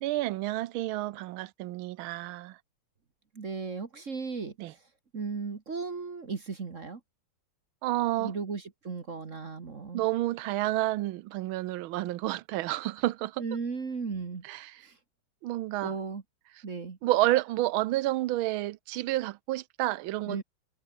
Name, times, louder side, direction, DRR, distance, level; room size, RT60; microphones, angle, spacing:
voice 1, 0.0-2.6 4.6-4.7 7.8-8.3 9.9-13.4 14.4-14.8 15.4-15.9 17.0-20.4, right 16 dB, 90° right, 1.5 m, -30 dB
voice 2, 3.3-4.6 5.1-7.0 8.2-10.0 13.4-14.4 14.8-15.0 15.8-16.2 16.6-17.0 20.3-20.4, right 5 dB, 40° right, 2.0 m, -36 dB
omnidirectional pair, 2.2 m